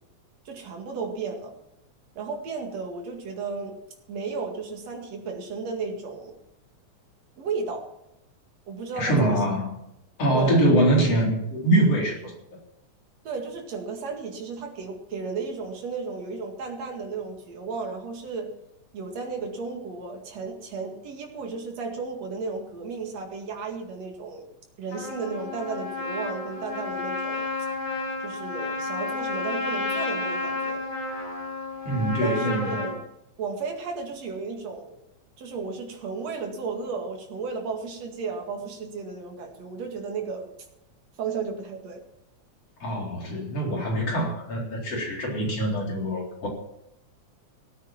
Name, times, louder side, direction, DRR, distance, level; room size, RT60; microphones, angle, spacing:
voice 1, 0.4-1.5 2.2-3.8 4.1-6.4 7.4-7.9 8.7-9.4 10.3-10.6 13.2-18.5 18.9-24.5 24.8-27.5 28.2-30.8 32.2-33.1 33.4-35.0 35.4-40.5 41.2-42.0, right 4 dB, 65° right, 3 dB, 3.2 m, -34 dB
voice 2, 9.0-9.7 10.2-12.3 31.8-32.8 42.8-46.5, right 1 dB, 55° left, -2 dB, 5.1 m, -23 dB
Trumpet, 24.9-33.0, left 2 dB, 85° left, 6.5 m, -31 dB
17.5 x 9.2 x 5.9 m, 0.82 s
omnidirectional pair, 3.3 m